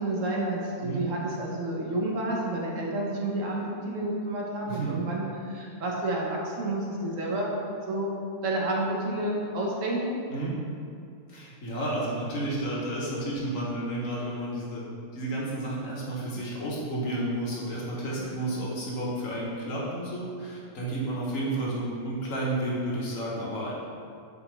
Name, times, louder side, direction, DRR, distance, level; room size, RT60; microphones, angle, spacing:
voice 1, 0.0-7.5 7.9-8.1 8.4-10.2 16.3-16.5 18.1-18.4, right 1 dB, 65° right, -2 dB, 1.2 m, -30 dB
voice 2, 11.3-14.8 15.1-23.8, right 1 dB, 65° left, -5 dB, 1.5 m, -31 dB
6.6 x 4.5 x 3.3 m, 2.4 s
omnidirectional pair, 1.5 m